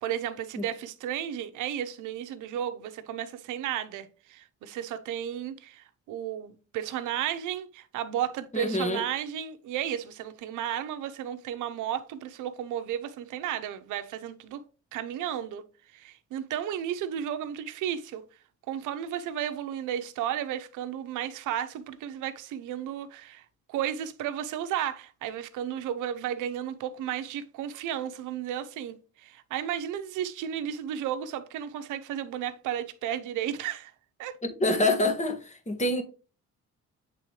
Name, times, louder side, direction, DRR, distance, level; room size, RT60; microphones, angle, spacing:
voice 1, 0.0-14.6 14.9-15.6 15.9-18.2 18.7-23.4 23.7-29.0 29.2-33.9 34.2-34.4, right 10 dB, 90° right, 0.7 m, -33 dB
voice 2, 8.5-9.0 34.6-36.0, left 2 dB, 25° left, 1.5 m, -26 dB
8.3 x 3.7 x 3.2 m
cardioid pair, 90°, 30 cm